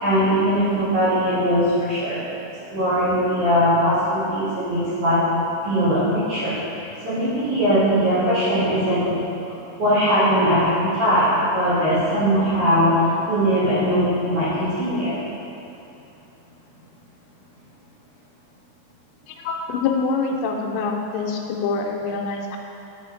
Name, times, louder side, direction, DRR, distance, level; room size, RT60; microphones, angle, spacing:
voice 1, 0.0-2.2 2.7-5.2 5.6-9.2 9.8-12.9 13.3-15.2, equal, 55° right, -12 dB, 2.7 m, -20 dB
voice 2, 19.3-22.6, left 4 dB, 85° left, 1 dB, 2.8 m, -25 dB
8.8 x 4.9 x 4.4 m, 2.9 s
omnidirectional pair, 5.2 m